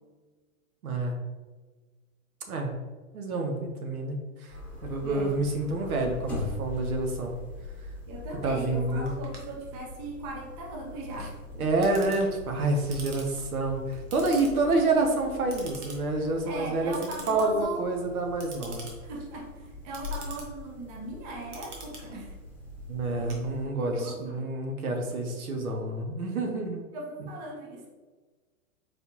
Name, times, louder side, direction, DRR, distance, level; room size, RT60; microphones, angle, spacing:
voice 1, 0.8-1.2 2.5-2.7 3.1-7.3 8.4-9.1 11.6-18.9 22.9-26.8, right 2 dB, 85° right, 3 dB, 1.0 m, -28 dB
sound 1, 4.5-23.7, left 2 dB, 5° left, 1.0 m, -42 dB
voice 2, 5.0-5.4 8.1-12.1 16.4-17.8 19.0-22.4 23.9-24.5 26.9-27.8, right 2 dB, 30° right, -1 dB, 0.8 m, -39 dB
Clock, 9.1-24.0, right 3 dB, 55° right, 1.3 m, -48 dB
4.3 x 3.3 x 3.0 m, 1.3 s
hypercardioid pair, 140°, 42 cm